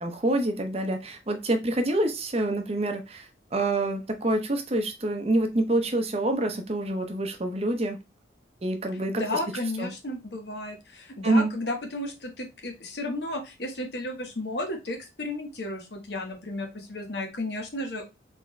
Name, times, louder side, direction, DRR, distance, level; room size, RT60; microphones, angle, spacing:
voice 1, 0.0-8.0 8.6-9.2 9.8-9.9 11.2-11.5, right 1 dB, 35° right, 5 dB, 0.7 m, -26 dB
voice 2, 8.9-18.1, left 1 dB, 65° left, 4 dB, 1.1 m, -33 dB
3.9 x 3.5 x 3.1 m, 0.26 s
head